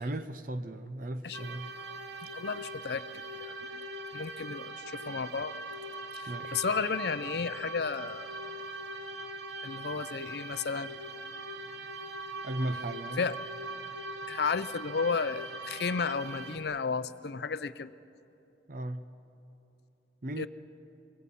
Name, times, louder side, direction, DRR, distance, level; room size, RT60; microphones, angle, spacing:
voice 1, 0.0-1.7 6.3-6.6 12.4-13.3 18.7-19.0 20.2-20.5, right 1 dB, 45° right, 11 dB, 0.6 m, -36 dB
sound 1, 1.3-16.6, right 2 dB, 70° right, 1.2 m, -41 dB
voice 2, 2.2-3.1 3.3-3.8 4.1-5.6 6.1-8.3 9.6-10.9 13.2-13.4 14.3-17.9 20.4-20.5, left 5 dB, 60° left, 15 dB, 0.5 m, -33 dB
25.5 x 23.0 x 5.6 m, 2.9 s
head